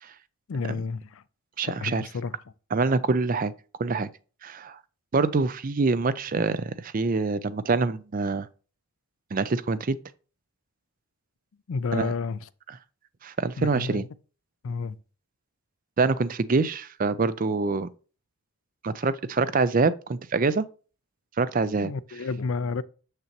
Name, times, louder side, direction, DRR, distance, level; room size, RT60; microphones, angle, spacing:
voice 1, 0.5-1.2 1.8-2.3 11.7-12.4 13.6-14.0 14.6-15.0 21.8-22.8, left 4 dB, 65° left, 0.4 m, -30 dB
voice 2, 1.6-2.1 2.7-3.5 3.8-4.1 4.4-4.8 5.1-8.5 9.3-10.0 11.9-12.1 12.7-12.8 13.2-14.1 16.0-17.9 18.8-20.7 21.4-21.9, right 4 dB, 40° right, 0.4 m, -25 dB
7.1 x 6.6 x 3.0 m
head